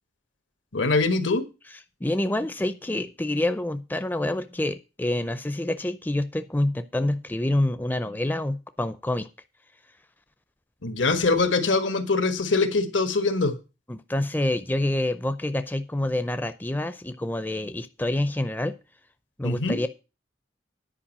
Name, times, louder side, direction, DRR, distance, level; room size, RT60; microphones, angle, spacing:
voice 1, 0.7-1.5 10.8-13.5 19.4-19.8, left 3 dB, 85° left, 8 dB, 1.6 m, -23 dB
voice 2, 2.0-9.3 13.9-18.8 19.4-19.9, left 1 dB, 10° left, 11 dB, 0.5 m, -27 dB
10.0 x 5.3 x 7.3 m, 0.30 s
head